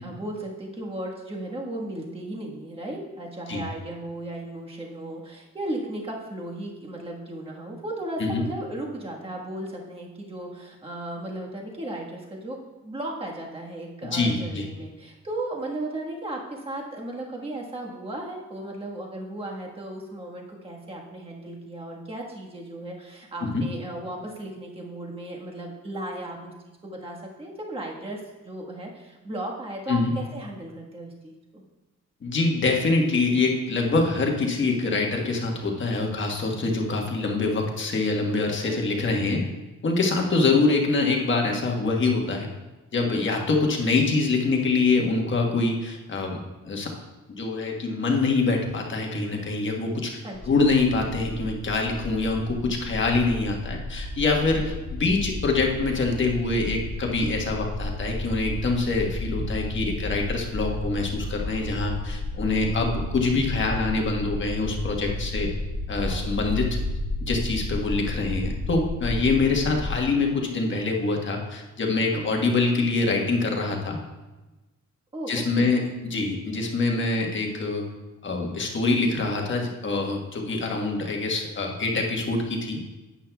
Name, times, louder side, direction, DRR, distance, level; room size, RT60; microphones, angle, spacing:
voice 1, 0.0-12.6 12.8-26.5 26.8-28.2 28.4-31.6 38.6-39.0 50.2-50.5 54.4-54.7 66.0-66.3 72.1-72.5 75.1-75.8, right 1 dB, 20° right, -1 dB, 1.4 m, -36 dB
voice 2, 14.1-14.7 23.4-23.6 29.9-30.1 32.2-39.4 39.8-42.5 42.9-46.4 46.6-46.9 47.3-50.2 50.5-65.5 65.9-66.7 67.3-74.0 75.3-77.9 78.2-82.8, left 3 dB, 40° left, 1 dB, 1.3 m, -25 dB
sound 1, 50.3-70.0, left 2 dB, ahead, 2.1 m, -32 dB
12.0 x 8.5 x 2.3 m, 1.1 s
cardioid pair, 135°, 30 cm